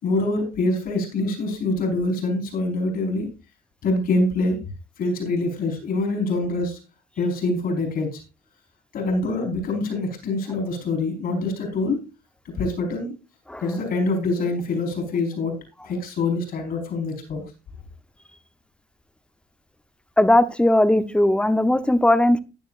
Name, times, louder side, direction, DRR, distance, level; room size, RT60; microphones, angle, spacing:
voice 1, 0.0-3.3 3.8-4.6 5.0-6.8 7.2-8.2 8.9-12.0 12.4-13.1 13.6-15.5 15.8-17.4, left 2 dB, 60° left, 3 dB, 4.7 m, -25 dB
voice 2, 20.2-22.4, left 1 dB, 5° left, 12 dB, 0.8 m, -18 dB
14.5 x 10.0 x 2.5 m, 0.30 s
cardioid pair, 110°, 17 cm